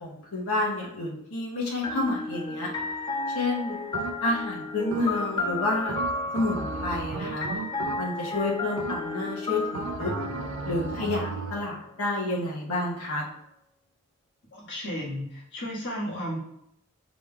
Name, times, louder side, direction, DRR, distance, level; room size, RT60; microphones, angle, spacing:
voice 1, 0.0-2.7 3.3-3.8 4.2-6.0 6.3-7.5 8.0-10.1 10.6-13.2, left 2 dB, 75° left, -3 dB, 1.1 m, -29 dB
sound 1, 1.8-11.6, left 2 dB, 20° left, 0.5 m, -33 dB
sound 2, 3.9-4.5 4.9-5.4 5.9-8.4 8.8-9.3 9.7-11.7, right 4 dB, 60° right, 0.4 m, -35 dB
voice 2, 14.5-16.4, equal, 50° left, -5 dB, 1.6 m, -33 dB
6.0 x 3.5 x 2.3 m, 0.78 s
head